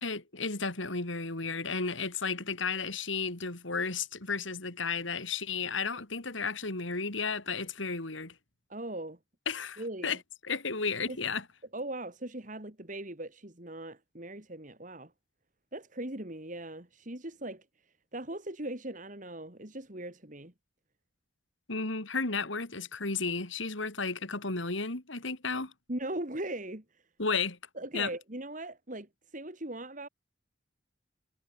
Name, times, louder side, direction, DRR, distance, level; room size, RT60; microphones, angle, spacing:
voice 1, 0.0-8.3 9.5-10.2 10.4-11.4 21.7-25.7 27.2-27.6 27.9-28.1, left 4 dB, 70° left, 3.1 m, -33 dB
voice 2, 8.7-9.2 9.8-10.2 11.1-11.2 11.7-15.1 15.7-17.6 18.1-20.5 25.9-26.8 27.7-30.1, right 1 dB, 40° right, 2.8 m, -39 dB
head